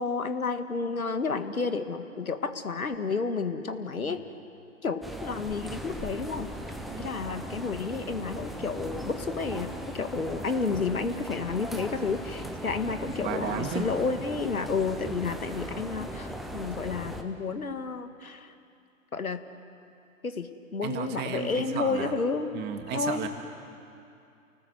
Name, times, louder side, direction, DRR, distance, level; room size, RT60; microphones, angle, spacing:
voice 1, 0.0-4.2 4.8-6.5 7.0-18.5 19.1-19.4 20.2-22.5 22.9-23.2, left 4 dB, 90° left, 9 dB, 1.7 m, -31 dB
sound 1, 5.0-17.2, equal, ahead, 0.5 m, -38 dB
voice 2, 13.2-13.9 20.8-22.1 22.5-23.3, right 8 dB, 25° right, 5 dB, 1.9 m, -34 dB
29.0 x 19.0 x 7.9 m, 2.6 s
hypercardioid pair, 125°, 42 cm